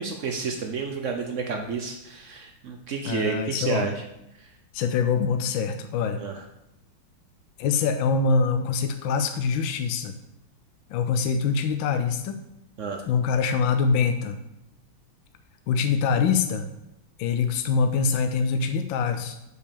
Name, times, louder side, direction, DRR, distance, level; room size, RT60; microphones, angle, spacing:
voice 1, 0.0-4.0 4.4-4.5 6.2-6.4 12.8-13.1, right 5 dB, 80° right, 3 dB, 0.6 m, -30 dB
voice 2, 3.1-3.9 4.7-6.2 7.6-10.1 10.9-12.4 13.1-14.4 15.7-16.7 17.2-19.4, left 5 dB, 70° left, 7 dB, 1.3 m, -24 dB
6.4 x 5.2 x 6.9 m, 0.86 s
omnidirectional pair, 2.3 m